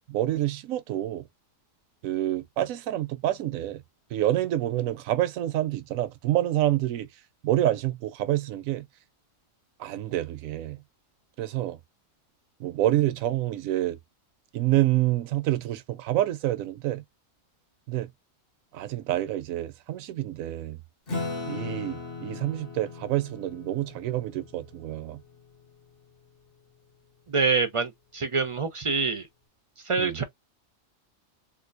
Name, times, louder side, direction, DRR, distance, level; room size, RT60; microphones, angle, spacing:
voice 1, 0.1-1.3 2.0-3.8 4.1-7.1 7.4-8.8 9.8-10.8 11.4-11.8 12.6-14.0 14.5-17.0 17.9-18.1 18.7-20.8 21.5-25.2 30.0-30.2, right 14 dB, 90° right, 1.0 m, -27 dB
Acoustic guitar / Strum, 21.1-25.9, left 3 dB, 45° left, 1.2 m, -38 dB
voice 2, 27.3-29.3 29.9-30.2, right 4 dB, 60° right, 0.3 m, -26 dB
3.7 x 2.5 x 2.5 m
omnidirectional pair, 1.4 m